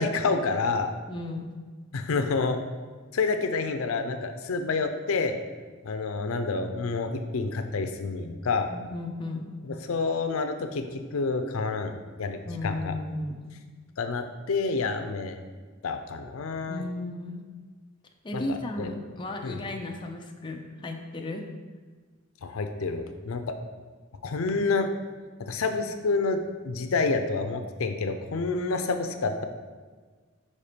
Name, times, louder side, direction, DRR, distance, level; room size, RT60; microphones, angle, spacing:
voice 1, 0.0-0.9 1.9-2.6 3.1-5.4 5.8-8.7 9.6-11.9 12.2-12.9 14.0-15.4 15.8-16.8 18.3-18.9 19.4-19.6 22.4-23.5 24.2-24.9 25.4-29.4, left 4 dB, 75° left, 7 dB, 0.5 m, -28 dB
voice 2, 1.1-1.5 8.7-9.5 12.5-13.4 16.7-17.4 18.2-21.4, left 2 dB, 20° left, 2 dB, 0.5 m, -35 dB
5.0 x 4.2 x 5.0 m, 1.4 s
head